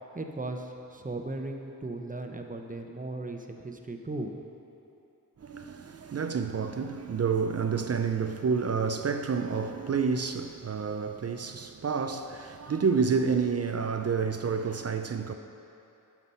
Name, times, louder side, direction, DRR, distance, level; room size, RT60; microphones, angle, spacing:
voice 1, 0.1-4.4, right 2 dB, 25° right, 0.9 m, -37 dB
voice 2, 5.4-15.3, right 5 dB, 45° right, 0.5 m, -29 dB
11.5 x 6.1 x 5.6 m
wide cardioid pair, 70°, 35 cm